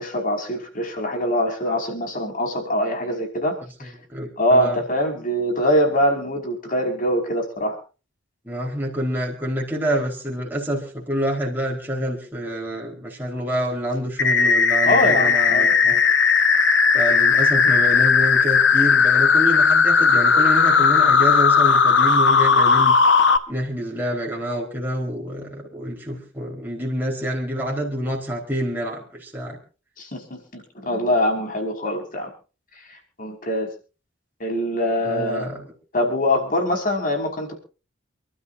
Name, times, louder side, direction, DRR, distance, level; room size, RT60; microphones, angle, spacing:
voice 1, 0.0-3.5 3.8-3.9 4.4-7.8 14.8-16.0 30.0-32.3 33.2-33.7 34.4-35.5 35.9-37.6, equal, 45° left, 3 dB, 5.3 m, -23 dB
voice 2, 4.1-4.8 8.4-15.9 16.9-23.0 23.5-29.6 35.0-35.7, equal, 10° right, -2 dB, 4.3 m, -27 dB
sound 1, 14.2-23.4, left 5 dB, 65° left, 1.3 m, -16 dB
28.5 x 12.5 x 2.7 m, 0.35 s
head